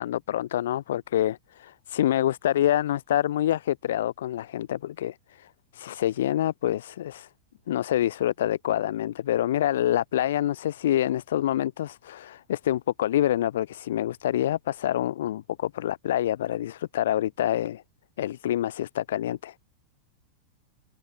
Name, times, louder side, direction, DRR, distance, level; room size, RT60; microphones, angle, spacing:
voice 1, 0.0-7.3 7.7-17.8 18.2-19.5, left 12 dB, 60° left, 5.3 m, -27 dB
figure-of-eight pair, 90°, 0 cm